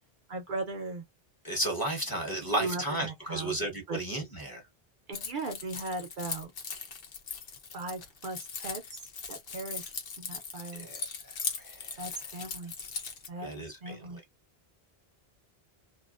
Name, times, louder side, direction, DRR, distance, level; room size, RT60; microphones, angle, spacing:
voice 1, 0.3-1.0 2.6-3.6 3.9-4.0 5.1-6.5 7.7-10.9 12.0-12.7 13.3-14.2, right 3 dB, 60° right, 0.7 m, -38 dB
voice 2, 1.4-4.6 10.7-12.0 13.4-14.2, right 1 dB, 20° left, 0.9 m, -34 dB
Keys jangling, 5.1-13.3, left 5 dB, 65° left, 0.9 m, -39 dB
2.7 x 2.3 x 2.3 m
omnidirectional pair, 1.0 m